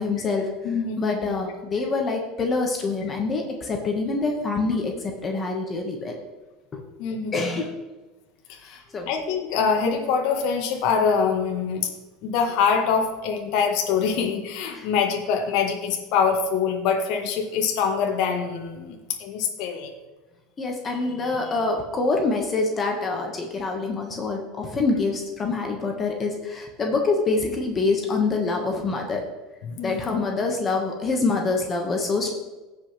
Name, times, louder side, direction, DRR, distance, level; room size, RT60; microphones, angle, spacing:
voice 1, 0.0-0.5 1.0-6.1 6.7-6.8 7.3-7.8 8.6-9.1 14.7-14.9 20.6-29.2 29.8-32.3, left 3 dB, 30° left, 2 dB, 1.7 m, -25 dB
voice 2, 0.6-1.4 7.0-7.3 8.5-8.8 9.1-11.9 12.2-19.9 29.6-30.2, left 6 dB, 65° left, 3 dB, 1.5 m, -24 dB
16.0 x 5.6 x 3.4 m, 1.2 s
hypercardioid pair, 95°, 0 cm